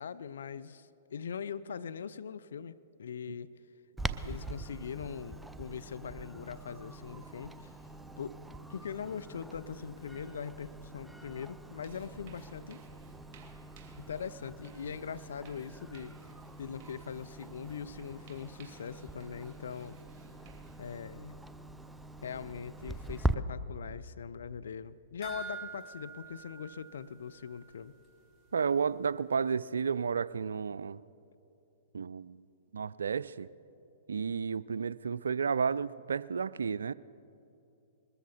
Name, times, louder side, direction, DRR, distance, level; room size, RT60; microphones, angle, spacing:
voice 1, 0.0-3.5 4.2-7.7 8.2-8.4 8.7-12.8 14.0-16.1 16.6-20.0 20.8-21.3 22.2-27.9, left 7 dB, 70° left, 14 dB, 0.4 m, -41 dB
Clock, 4.0-23.3, right 1 dB, 5° right, 0.5 m, -42 dB
sound 1, 11.2-21.4, right 7 dB, 40° right, 2.7 m, -62 dB
sound 2, 25.2-27.8 28.0-28.1 28.6-28.7, right 4 dB, 15° left, 3.9 m, -46 dB
voice 2, 28.5-31.0 31.9-32.4 32.7-33.5 34.1-36.9, right 6 dB, 80° right, 19 dB, 0.3 m, -32 dB
21.0 x 14.0 x 4.2 m, 2.7 s
hypercardioid pair, 115°, 0 cm